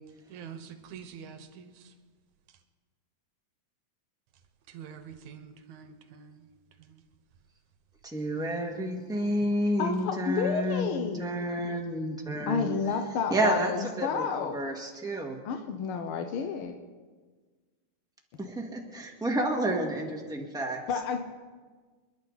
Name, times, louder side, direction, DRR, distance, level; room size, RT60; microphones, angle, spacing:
voice 1, 0.3-1.9 4.7-6.5 6.8-7.0, right 7 dB, 75° right, 2.4 m, -46 dB
voice 2, 8.0-12.7 13.3-15.4 18.4-20.8, right 1 dB, ahead, 1.2 m, -30 dB
voice 3, 9.8-11.3 12.5-14.6 15.4-16.8 20.9-21.2, left 6 dB, 70° left, 1.3 m, -30 dB
27.5 x 11.0 x 4.1 m
omnidirectional pair, 3.5 m